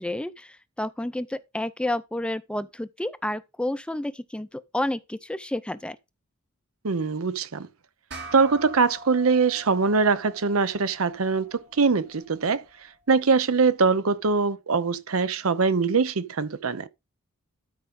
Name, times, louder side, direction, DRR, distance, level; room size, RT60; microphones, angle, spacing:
voice 1, 0.0-6.0, left 1 dB, 5° left, 0.4 m, -30 dB
voice 2, 6.8-7.7 8.3-12.6 13.1-16.9, right 4 dB, 80° right, 0.7 m, -23 dB
sound 1, 8.1-12.9, right 1 dB, 55° right, 2.3 m, -45 dB
12.5 x 5.1 x 3.7 m
head